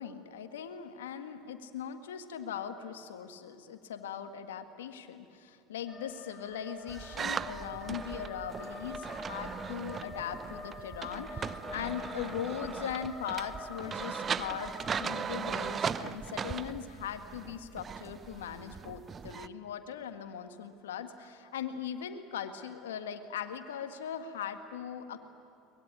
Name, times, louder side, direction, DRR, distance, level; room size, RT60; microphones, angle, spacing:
voice 1, 0.0-25.2, left 8 dB, 80° left, 9 dB, 1.7 m, -40 dB
sound 1, 5.9-15.8, left 3 dB, 20° left, 4.2 m, -46 dB
sound 2, 6.9-19.5, right 7 dB, 35° right, 0.8 m, -38 dB
22.5 x 20.5 x 9.9 m, 2.6 s
hypercardioid pair, 75°, 0 cm